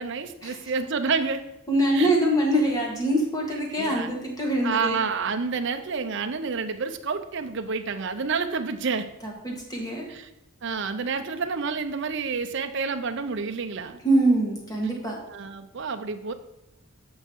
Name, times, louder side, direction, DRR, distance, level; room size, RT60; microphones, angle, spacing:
voice 1, 0.0-1.4 1.9-2.1 3.5-4.1 4.6-9.1 10.1-10.3 10.6-14.0 15.3-16.3, right 5 dB, 60° right, 8 dB, 0.6 m, -29 dB
voice 2, 1.7-5.0 9.2-10.1 14.0-15.2, right 1 dB, 15° left, -1 dB, 1.8 m, -24 dB
8.0 x 5.5 x 4.6 m, 0.93 s
head